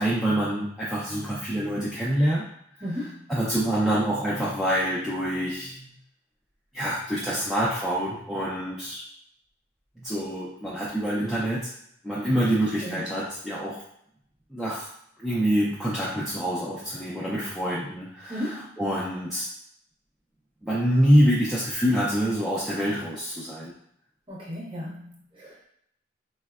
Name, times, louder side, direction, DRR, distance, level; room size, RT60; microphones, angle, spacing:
voice 1, 0.0-2.5 3.3-5.9 6.7-9.0 10.0-11.7 12.0-13.8 14.5-14.9 15.2-18.4 18.8-19.5 20.6-23.7, equal, ahead, -8 dB, 0.3 m, -26 dB
voice 2, 2.8-3.3 12.8-13.0 18.3-18.8 24.3-25.7, equal, 25° right, -6 dB, 0.8 m, -35 dB
4.2 x 2.1 x 2.3 m, 0.71 s
head